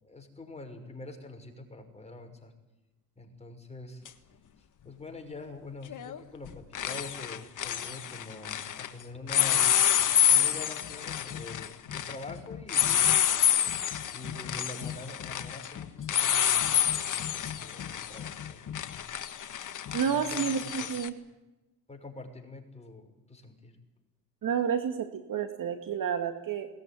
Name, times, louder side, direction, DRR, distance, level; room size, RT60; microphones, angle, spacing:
voice 1, 0.0-2.5 3.2-4.0 4.8-9.8 10.3-13.1 14.1-19.1 20.0-20.9 21.9-23.7, left 2 dB, 15° left, 3 dB, 6.0 m, -45 dB
sound 1, 4.1-4.2 5.9-6.2 6.5-8.9 9.3-21.1, left 10 dB, 40° left, 1.7 m, -28 dB
voice 2, 19.9-21.2 24.4-26.7, right 7 dB, 45° right, 7 dB, 2.2 m, -30 dB
21.5 x 19.5 x 10.0 m, 1.0 s
hypercardioid pair, 80°, 47 cm